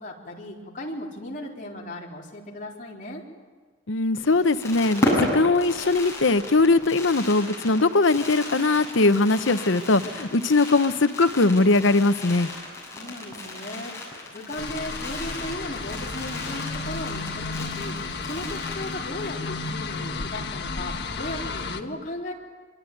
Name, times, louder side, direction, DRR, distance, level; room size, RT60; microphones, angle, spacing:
voice 1, 0.0-3.2 12.9-18.0 18.2-22.3, left 1 dB, 40° left, -2 dB, 4.0 m, -36 dB
voice 2, 3.9-12.5, left 3 dB, 80° left, 11 dB, 1.0 m, -20 dB
Fireworks, 4.2-19.4 19.6-19.7 19.9-20.2, left 1 dB, 15° left, 7.3 m, -34 dB
sound 1, 14.6-21.8, left 3 dB, 60° left, 1.6 m, -33 dB
25.0 x 24.0 x 9.2 m, 1.4 s
head